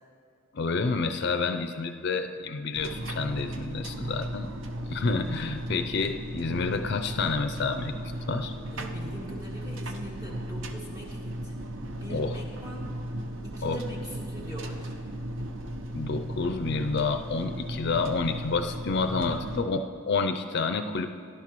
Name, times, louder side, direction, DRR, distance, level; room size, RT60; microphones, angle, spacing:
voice 1, 0.5-4.5 4.8-7.9 8.3-8.5 12.1-12.4 13.6-13.8 15.9-21.1, left 4 dB, 50° left, 7 dB, 0.4 m, -29 dB
sound 1, 2.7-19.6, right 1 dB, 65° right, 0.7 m, -36 dB
voice 2, 5.0-5.3 8.7-11.5 11.9-13.0 13.4-15.0 19.0-19.7, equal, 15° right, -3 dB, 1.9 m, -42 dB
17.5 x 11.0 x 3.0 m, 2.2 s
head